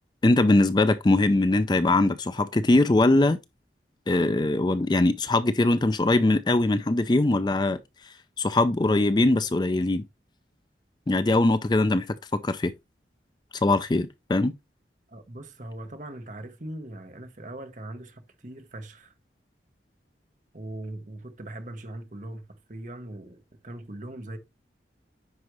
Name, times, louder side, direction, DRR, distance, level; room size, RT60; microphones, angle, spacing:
voice 1, 0.2-3.4 4.1-7.8 8.4-10.0 11.1-12.7 13.5-14.5, left 2 dB, 25° left, 0.4 m, -22 dB
voice 2, 15.1-19.1 20.5-24.4, right 1 dB, 45° right, 1.1 m, -40 dB
9.6 x 5.0 x 3.1 m
head